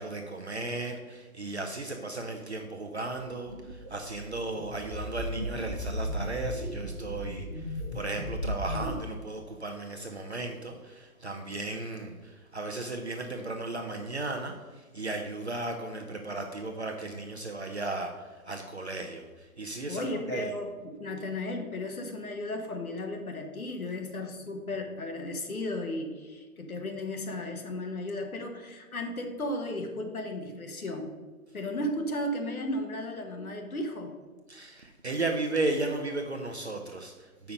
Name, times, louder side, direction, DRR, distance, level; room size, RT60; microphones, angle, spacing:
voice 1, 0.0-20.5 34.5-37.5, right 2 dB, 50° right, 3 dB, 0.8 m, -35 dB
sound 1, 3.5-8.9, equal, 15° right, 1.0 m, -36 dB
voice 2, 19.9-31.2 31.5-34.1, left 1 dB, 70° left, 3 dB, 1.4 m, -35 dB
7.0 x 5.7 x 5.3 m, 1.3 s
hypercardioid pair, 180°, 44 cm